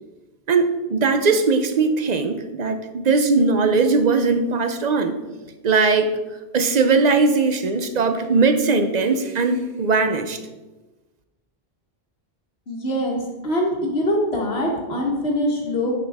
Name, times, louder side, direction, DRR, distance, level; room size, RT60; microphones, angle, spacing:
voice 1, 0.5-5.2 5.6-6.1 6.5-10.4, right 4 dB, 45° right, 8 dB, 0.7 m, -19 dB
voice 2, 12.7-15.9, equal, 85° left, -1 dB, 1.7 m, -23 dB
9.6 x 5.9 x 3.5 m, 1.1 s
omnidirectional pair, 1.0 m